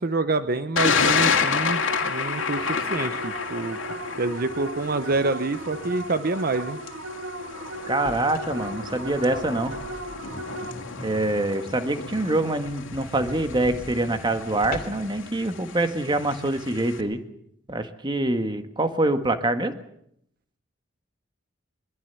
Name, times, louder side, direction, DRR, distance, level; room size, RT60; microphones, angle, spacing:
voice 1, 0.0-3.8 4.2-6.8, right 3 dB, 50° right, 11 dB, 0.9 m, -27 dB
Thunder, 0.8-17.0, left 5 dB, 85° left, 2.5 m, -30 dB
sound 1, 1.7-11.1, right 1 dB, 80° right, 2.0 m, -37 dB
sound 2, 7.9-10.5 10.9-11.0 11.4-11.5 11.8-11.9 12.1-12.2 12.5-15.2, left 1 dB, 50° left, 2.7 m, -41 dB
voice 2, 7.9-9.7 11.0-17.2 17.7-19.7, right 2 dB, 25° right, 8 dB, 1.7 m, -25 dB
22.5 x 21.5 x 7.0 m, 0.73 s
head